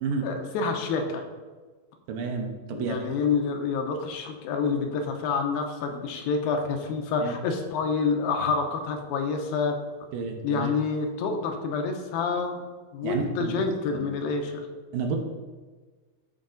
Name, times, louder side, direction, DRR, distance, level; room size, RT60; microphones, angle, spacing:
voice 1, 0.2-1.2 2.7-9.8 10.4-12.6 12.9-14.7, left 5 dB, 80° left, 4 dB, 2.7 m, -28 dB
voice 2, 2.1-3.1 7.2-7.3 10.1-10.7 13.0-13.6 13.9-14.1 14.9-15.2, right 4 dB, 75° right, 2 dB, 2.5 m, -30 dB
12.5 x 4.7 x 3.9 m, 1.4 s
omnidirectional pair, 4.2 m